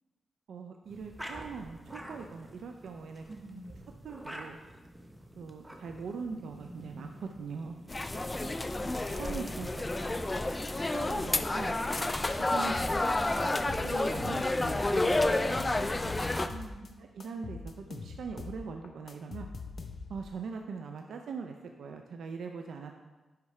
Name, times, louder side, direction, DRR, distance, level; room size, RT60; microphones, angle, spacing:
voice 1, 0.5-3.2 4.0-4.6 5.4-7.8 9.1-10.1 10.9-11.8 12.3-13.0 13.3-15.9 17.1-19.5 20.1-22.9, right 5 dB, 80° right, 4 dB, 0.4 m, -41 dB
sound 1, 0.8-12.6, equal, 10° right, 0.8 m, -49 dB
voice 2, 3.3-3.7 8.4-9.0 16.5-17.0, right 2 dB, 35° right, 0 dB, 1.4 m, -46 dB
sound 2, 7.9-16.5, left 2 dB, 20° left, 0.4 m, -30 dB
sound 3, 12.7-13.1 13.4-15.0 15.3-16.9 17.2-20.3, left 4 dB, 55° left, 0.7 m, -43 dB
10.5 x 4.7 x 3.2 m, 1.2 s
cardioid pair, 100°, 0 cm